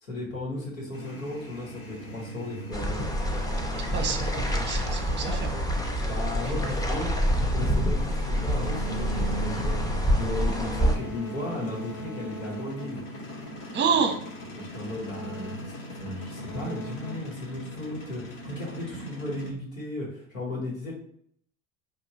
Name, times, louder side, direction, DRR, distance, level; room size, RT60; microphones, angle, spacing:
voice 1, 0.0-3.2 6.0-13.0 14.5-20.9, left 2 dB, 90° left, -3 dB, 1.4 m, -35 dB
sound 1, 0.9-19.5, equal, 35° left, 1.0 m, -40 dB
sound 2, 2.7-11.0, equal, 10° left, 0.6 m, -27 dB
voice 2, 3.9-5.5 13.7-14.2, right 6 dB, 30° right, 6 dB, 0.8 m, -27 dB
sound 3, 4.5-18.2, right 1 dB, 70° left, 1.4 m, -43 dB
4.6 x 2.5 x 2.8 m, 0.66 s
hypercardioid pair, 70°, 40 cm